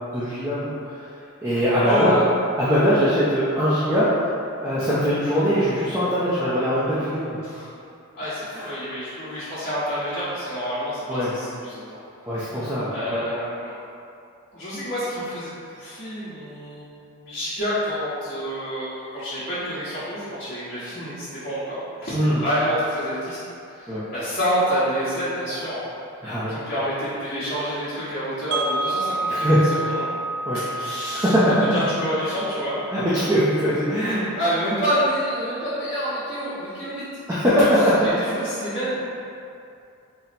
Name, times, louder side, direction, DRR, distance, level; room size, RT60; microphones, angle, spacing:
voice 1, 0.1-1.1 1.4-2.1 2.6-4.1 4.6-7.4 8.5-8.7 11.1-11.3 12.3-13.2 22.1-22.4 23.9-24.0 26.2-26.6 29.3-29.6 30.5-30.6 31.1-31.6 32.9-34.2 37.3-38.0, equal, 15° right, -12 dB, 0.4 m, -21 dB
voice 2, 1.8-2.2 7.4-7.7 8.1-11.9 12.9-13.8 14.5-23.4 23.7-25.8 26.5-30.0 30.8-31.3 31.7-32.8 34.3-37.0 37.6-37.7 38.0-39.1, equal, 40° left, -14 dB, 1.0 m, -28 dB
Wind chime, 28.5-34.5, right 2 dB, 70° right, 0.5 m, -30 dB
4.0 x 2.1 x 4.1 m, 2.6 s
head